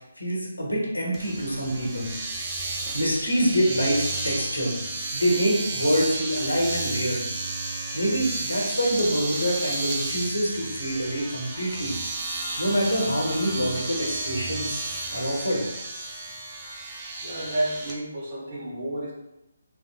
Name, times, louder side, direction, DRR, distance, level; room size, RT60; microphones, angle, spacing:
voice 1, 0.0-2.1 2.9-4.7 5.1-7.2 7.9-11.9 12.6-14.8 15.1-15.6, equal, 85° left, -3 dB, 1.0 m, -25 dB
Domestic sounds home sounds, 1.1-18.0, right 2 dB, 20° right, 0.4 m, -32 dB
voice 2, 17.2-19.1, right 1 dB, 50° right, -3 dB, 0.9 m, -30 dB
3.5 x 2.1 x 2.4 m, 0.89 s
figure-of-eight pair, 145°, 0 cm